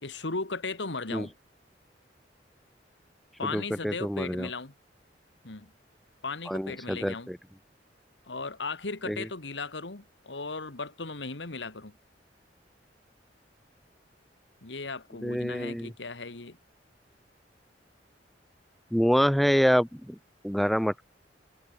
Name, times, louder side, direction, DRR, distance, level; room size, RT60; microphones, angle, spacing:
voice 1, 0.0-1.3 3.4-4.7 5.4-5.7 6.2-7.3 8.3-12.0 14.6-16.6, left 3 dB, 85° left, 2.0 m, -36 dB
voice 2, 3.5-4.5 6.5-7.4 9.1-9.2 15.2-15.9 18.9-19.9 20.4-21.0, equal, ahead, 0.5 m, -26 dB
head